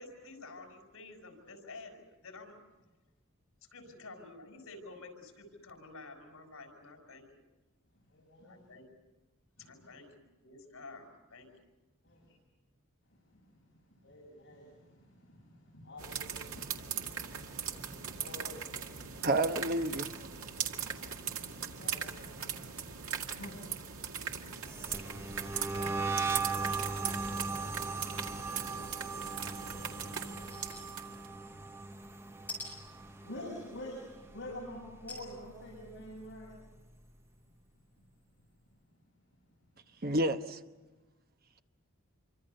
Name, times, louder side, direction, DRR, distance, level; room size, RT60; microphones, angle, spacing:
voice 1, 0.0-2.6 3.6-7.4 8.5-8.9 9.6-11.6, left 3 dB, 80° left, 4 dB, 5.5 m, -50 dB
voice 2, 8.1-8.7 9.7-9.9 12.0-12.3 13.1-13.2 13.5-13.6 13.9-19.3 20.3-36.5, left 1 dB, 55° left, -5 dB, 7.2 m, -50 dB
sound 1, 16.0-31.3, right 7 dB, 80° right, 2.0 m, -39 dB
voice 3, 19.2-20.3 40.0-40.6, right 1 dB, 45° right, 7 dB, 1.1 m, -30 dB
sound 2, 24.6-33.8 34.1-34.5 34.8-36.4, right 4 dB, 10° right, 0.8 m, -38 dB
sound 3, 30.4-30.8 31.3-31.4 32.5-32.7 35.1-35.3 35.9-36.0 36.2-36.3, left 2 dB, 10° left, 6.9 m, -43 dB
27.0 x 24.5 x 6.8 m, 1.1 s
head